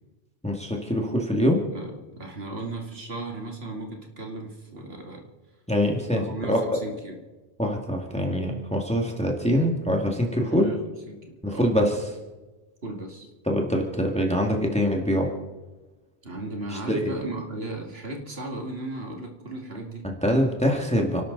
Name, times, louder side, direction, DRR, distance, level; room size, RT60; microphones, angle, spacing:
voice 1, 0.4-1.6 5.7-6.2 6.5-6.8 7.6-10.7 11.4-12.0 13.5-15.3 16.7-17.1 20.0-21.2, equal, 5° left, 0 dB, 2.1 m, -24 dB
voice 2, 1.7-5.3 6.1-7.2 10.5-10.8 11.1-11.2 11.5-11.7 12.8-13.3 16.2-20.1, right 2 dB, 70° right, 2 dB, 2.5 m, -36 dB
30.0 x 12.0 x 4.0 m, 1.2 s
omnidirectional pair, 1.1 m